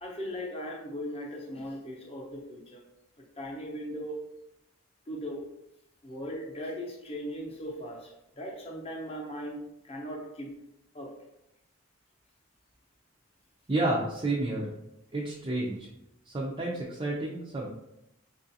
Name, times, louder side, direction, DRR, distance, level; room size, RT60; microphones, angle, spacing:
voice 1, 0.0-2.8 3.4-4.2 5.1-5.5 6.0-8.1 8.4-10.5 10.9-11.1, equal, 30° left, 0 dB, 0.7 m, -38 dB
voice 2, 13.7-14.7 15.1-15.9 16.3-17.7, right 2 dB, 25° right, -3 dB, 0.4 m, -30 dB
4.7 x 2.4 x 2.6 m, 0.83 s
head